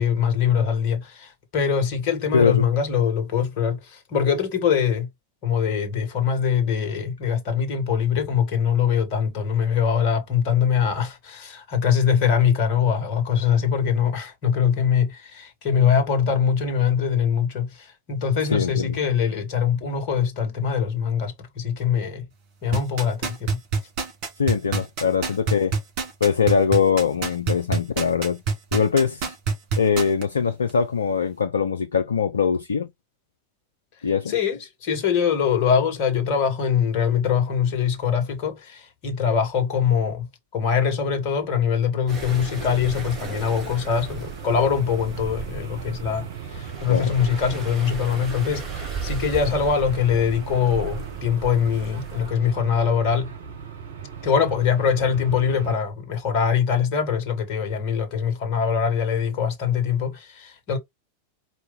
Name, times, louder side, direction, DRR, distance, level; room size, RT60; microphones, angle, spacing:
voice 1, 0.0-5.1 5.4-22.2 22.6-23.6 34.3-40.3 40.5-53.3 54.2-60.8, left 7 dB, 45° left, 1.5 m, -23 dB
voice 2, 2.3-2.6 18.5-19.0 24.4-25.8 26.2-28.4 28.7-29.3 29.8-32.9 34.0-34.3 46.9-47.1, left 6 dB, 70° left, 0.5 m, -22 dB
sound 1, 22.7-30.2 30.7-30.8, right 5 dB, 40° right, 2.3 m, -25 dB
sound 2, 42.1-52.3, right 5 dB, 15° right, 2.2 m, -36 dB
sound 3, 42.2-55.7, right 7 dB, 60° right, 1.0 m, -38 dB
4.6 x 2.7 x 3.7 m
figure-of-eight pair, 90°, 0 cm